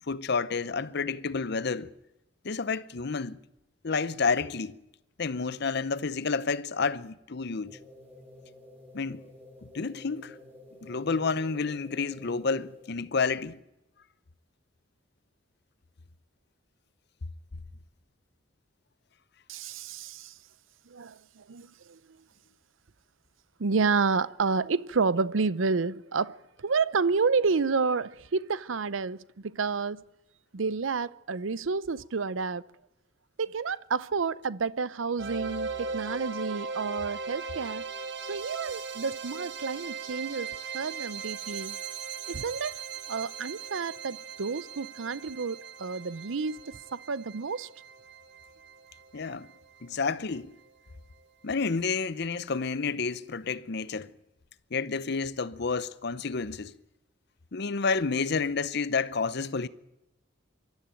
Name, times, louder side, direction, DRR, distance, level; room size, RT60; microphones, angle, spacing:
voice 1, 0.1-1.9 2.4-3.4 3.8-4.8 5.2-7.8 8.9-9.2 9.6-10.4 10.8-13.6 49.1-49.5 49.8-50.5 51.4-54.1 54.7-56.7 57.5-59.7, left 4 dB, 55° left, 0.7 m, -30 dB
sound 1, 7.6-13.1, left 1 dB, 10° right, 5.4 m, -51 dB
voice 2, 19.5-20.3 20.9-22.0 23.6-30.0 30.5-32.6 33.4-37.9 38.3-41.8 42.3-42.8 43.1-46.6 46.9-47.7, right 4 dB, 85° right, 0.6 m, -30 dB
sound 2, 35.2-50.2, right 5 dB, 60° right, 1.4 m, -39 dB
24.0 x 13.0 x 8.9 m
head